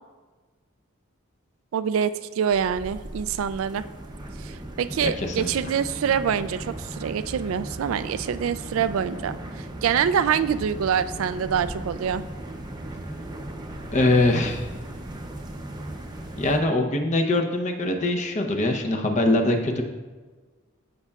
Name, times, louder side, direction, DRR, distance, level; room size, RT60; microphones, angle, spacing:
voice 1, 1.7-3.8 4.4-12.2, right 8 dB, 85° right, 13 dB, 0.3 m, -25 dB
sound 1, 2.5-16.6, right 1 dB, 20° right, 0.6 m, -37 dB
voice 2, 5.0-5.5 13.9-14.7 16.4-19.8, left 2 dB, 35° left, 3 dB, 0.7 m, -23 dB
14.0 x 5.5 x 2.4 m, 1.3 s
head